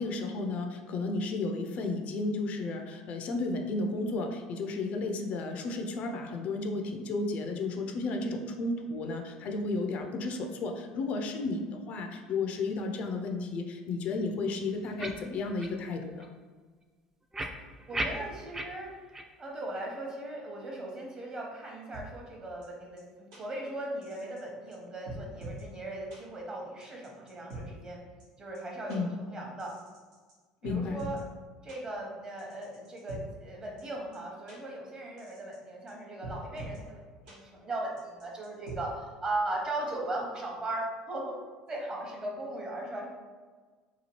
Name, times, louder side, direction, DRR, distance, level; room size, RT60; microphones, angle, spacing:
voice 1, 0.0-16.3 28.9-29.1 30.6-31.0, left 3 dB, 55° left, 4 dB, 0.4 m, -33 dB
sound 1, 15.0-15.2 15.6-15.7 16.2-16.3 17.3-18.7 19.1-19.2 19.7-19.8, right 1 dB, 15° right, 0.3 m, -34 dB
voice 2, 17.9-18.9 19.4-28.0 28.4-29.8 30.6-31.2 31.6-41.4 41.7-43.1, right 1 dB, 30° right, -1 dB, 0.9 m, -38 dB
sound 2, 21.9-22.0 22.6-22.7 23.0-23.1 23.3-23.4 24.0-24.4 24.7-24.8 25.1-25.6 26.1-26.2 26.8-27.6 28.2-28.3 28.5-28.6 28.9-29.0 29.6-30.3 30.6-31.2 31.7-31.8 32.4-33.2 33.8-33.9 34.1-34.2 34.5-34.6 35.2-35.6 35.9-36.0 36.2-36.8 37.3-37.4 38.0-38.8, right 3 dB, 80° right, 0.9 m, -44 dB
2.8 x 2.3 x 3.0 m, 1.4 s
hypercardioid pair, 80°, 3 cm